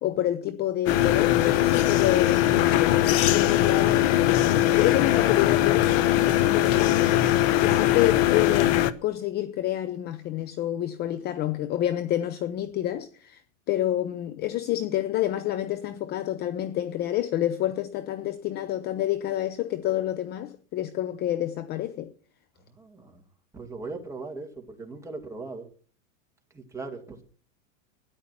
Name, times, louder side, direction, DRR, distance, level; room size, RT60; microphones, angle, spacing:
voice 1, 0.0-4.1 4.7-7.1 7.6-8.7 9.0-13.4 13.7-22.1, left 13 dB, 25° left, 0.7 m, -28 dB
sound 1, 0.9-8.9, left 13 dB, 45° left, 1.1 m, -21 dB
voice 2, 22.7-23.2 23.5-25.7 26.5-27.2, right 3 dB, 10° right, 2.4 m, -39 dB
13.0 x 10.0 x 5.9 m
supercardioid pair, 140°, 39 cm